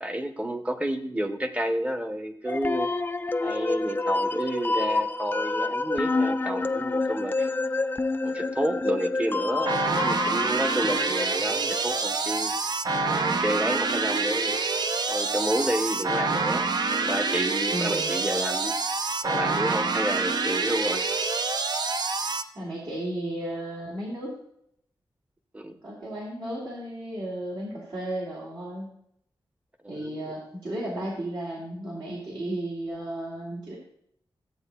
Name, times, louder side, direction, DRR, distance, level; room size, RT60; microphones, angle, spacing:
voice 1, 0.0-2.9 3.4-7.5 8.2-12.5 13.1-14.6 15.1-16.7 17.0-18.8 19.2-21.1 25.5-25.7 29.8-30.3, right 1 dB, 15° right, 7 dB, 0.8 m, -30 dB
sound 1, 2.5-11.3, left 3 dB, 20° left, 0.3 m, -28 dB
sound 2, 9.7-22.4, right 4 dB, 50° right, 0.5 m, -27 dB
voice 2, 17.7-18.1 22.5-24.4 25.8-28.9 29.9-33.8, right 1 dB, 65° right, -6 dB, 2.5 m, -34 dB
13.5 x 7.9 x 2.3 m, 0.71 s
wide cardioid pair, 105°, 9 cm